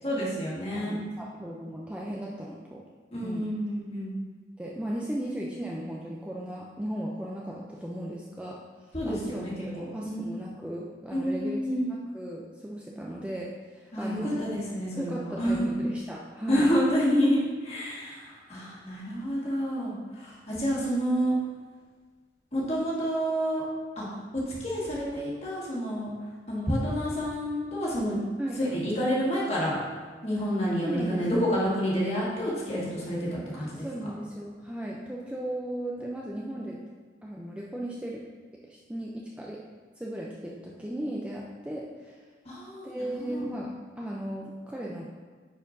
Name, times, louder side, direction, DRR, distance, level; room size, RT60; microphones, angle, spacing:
voice 1, 0.0-1.1 3.1-4.2 8.9-10.3 11.1-11.9 13.9-15.7 16.5-21.4 22.5-23.6 23.9-24.0 24.3-26.1 26.5-28.2 28.6-29.8 30.2-33.9 42.4-43.5, equal, 35° left, -6 dB, 1.7 m, -29 dB
voice 2, 0.7-2.8 3.2-3.5 4.6-11.6 11.9-14.4 15.0-16.7 28.4-28.6 30.8-31.5 33.5-36.8 37.2-38.2 38.6-39.6 40.0-42.3 42.8-45.0, right 1 dB, 5° right, -3 dB, 0.4 m, -36 dB
9.8 x 4.4 x 2.6 m, 1.4 s
head